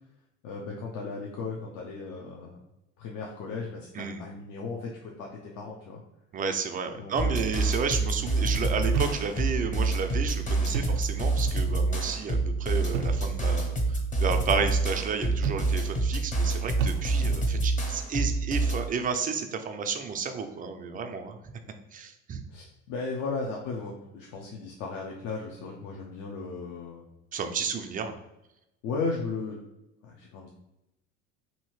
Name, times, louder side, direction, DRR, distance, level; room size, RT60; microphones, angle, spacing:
voice 1, 0.4-2.6 3.0-6.0 6.9-7.6 22.5-27.1 28.8-29.6 30.0-30.5, left 4 dB, 55° left, -1 dB, 0.6 m, -36 dB
voice 2, 6.3-21.4 21.9-22.4 27.3-28.1, right 5 dB, 25° right, 7 dB, 0.3 m, -32 dB
sound 1, 7.2-18.9, right 2 dB, 20° left, 0.7 m, -27 dB
sound 2, 8.9-9.7 10.6-11.3 12.9-13.4 15.3-16.0 16.8-17.5, right 6 dB, 85° right, 0.6 m, -34 dB
2.8 x 2.7 x 3.0 m, 0.90 s
hypercardioid pair, 80°, 36 cm